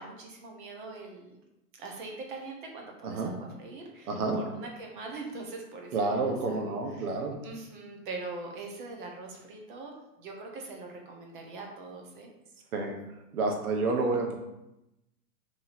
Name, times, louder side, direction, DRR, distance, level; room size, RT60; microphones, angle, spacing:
voice 1, 0.0-1.4 1.7-7.1 7.4-12.3, right 3 dB, 35° right, 1 dB, 0.7 m, -42 dB
voice 2, 4.1-4.4 5.9-7.4 12.7-12.9 13.3-14.4, right 3 dB, 70° right, 2 dB, 1.0 m, -29 dB
3.0 x 2.6 x 4.0 m, 0.91 s
hypercardioid pair, 155°, 45 cm